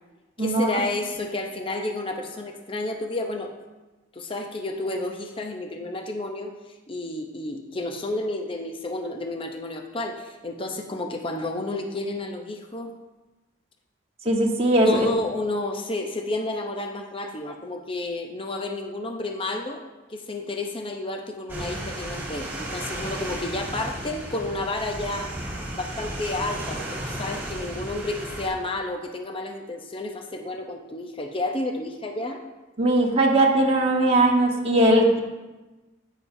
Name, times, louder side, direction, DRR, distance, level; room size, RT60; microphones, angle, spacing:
voice 1, 0.4-3.5 4.1-6.5 6.9-12.9 14.9-19.8 20.1-25.3 25.7-32.4, left 2 dB, 25° left, 3 dB, 0.7 m, -31 dB
voice 2, 14.2-15.1 32.8-35.2, right 1 dB, 30° right, -1 dB, 1.3 m, -19 dB
sound 1, 21.5-28.5, right 1 dB, 10° right, 1.7 m, -34 dB
10.5 x 9.2 x 2.7 m, 1.1 s
head